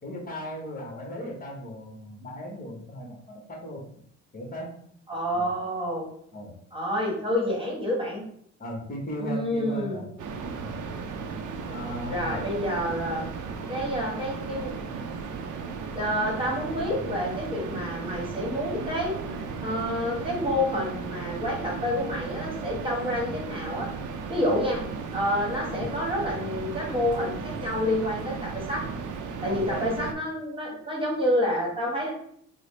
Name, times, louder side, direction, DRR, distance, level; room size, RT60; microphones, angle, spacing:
voice 1, 0.0-3.8 4.3-4.7 5.3-5.5 6.3-6.6 8.6-10.1 10.5-10.7 11.7-12.5 25.7-25.9 29.5-29.9, equal, 30° left, 0 dB, 1.1 m, -37 dB
voice 2, 5.1-6.1 6.7-8.2 9.2-10.0 12.1-13.3 13.7-14.7 15.9-19.1 19.6-23.9 24.3-24.8 25.1-28.8 29.4-32.1, equal, 15° right, -3 dB, 1.4 m, -28 dB
sound 1, 10.2-30.1, right 5 dB, 80° right, 0.5 m, -35 dB
3.8 x 2.0 x 3.2 m, 0.66 s
cardioid pair, 90°, 30 cm